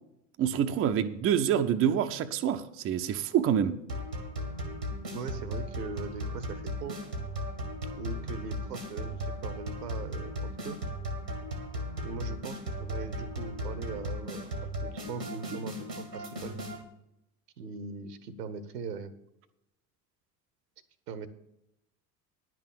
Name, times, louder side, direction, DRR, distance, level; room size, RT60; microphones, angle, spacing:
voice 1, 0.4-3.8, right 9 dB, 25° right, 8 dB, 0.6 m, -27 dB
sound 1, 3.9-16.8, equal, 90° right, 1.5 m, -36 dB
voice 2, 5.1-7.0 7.9-10.8 12.0-16.6 17.6-19.1 21.1-21.3, right 5 dB, 70° right, 14 dB, 1.0 m, -40 dB
10.5 x 6.0 x 7.1 m, 0.85 s
figure-of-eight pair, 65°, 49 cm